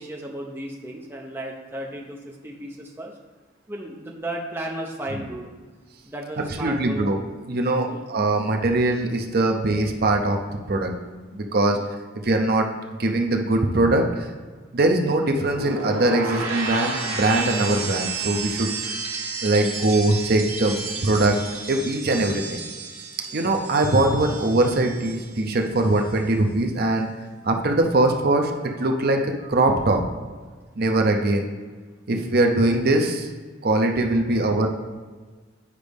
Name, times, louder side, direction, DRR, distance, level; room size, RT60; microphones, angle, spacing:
voice 1, 0.0-3.1 3.7-5.5 6.0-7.1 7.8-8.0 11.6-11.8 23.3-23.4, right 1 dB, 10° right, -1 dB, 0.6 m, -34 dB
voice 2, 6.6-7.2 7.5-10.4 10.7-10.9 11.3-11.8 12.2-12.7 13.0-14.3 14.7-19.0 19.4-21.4 21.7-22.6 23.3-27.1 27.4-30.0 30.8-31.5 32.1-33.3 33.6-34.7, right 2 dB, 50° right, 3 dB, 0.6 m, -21 dB
sound 1, 15.4-25.5 25.7-26.2, right 4 dB, 85° right, 1.4 m, -32 dB
8.2 x 5.1 x 3.5 m, 1.4 s
head